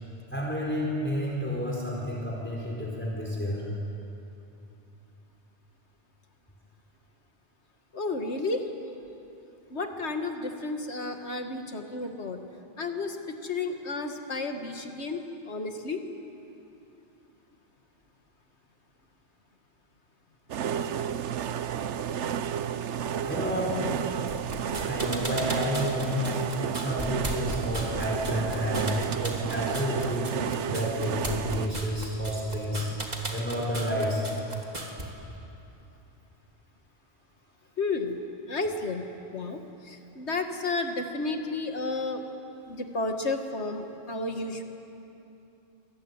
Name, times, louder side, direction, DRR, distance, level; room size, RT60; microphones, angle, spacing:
voice 1, 0.3-3.6 23.2-24.1 24.9-26.4 26.8-30.3 30.7-32.9 33.3-34.2, equal, 10° left, -3 dB, 4.6 m, -30 dB
voice 2, 7.9-8.7 9.7-12.4 12.8-16.0 37.8-38.2 38.5-39.0 39.3-42.2 42.7-44.6, left 3 dB, 75° left, 5 dB, 2.2 m, -32 dB
sound 1, 20.5-31.7, right 8 dB, 85° right, 1.1 m, -31 dB
sound 2, 24.3-35.0, right 1 dB, 35° right, 3.1 m, -36 dB
26.5 x 22.0 x 9.7 m, 2.9 s
omnidirectional pair, 1.2 m